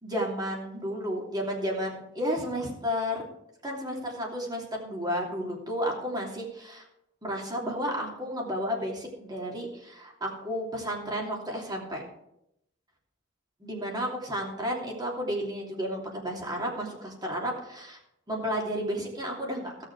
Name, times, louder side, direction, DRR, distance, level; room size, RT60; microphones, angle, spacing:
voice 1, 0.0-3.2 3.6-6.8 7.2-12.0 13.6-18.0 18.3-19.8, equal, 20° right, -2 dB, 2.9 m, -32 dB
17.0 x 6.6 x 4.7 m, 0.80 s
head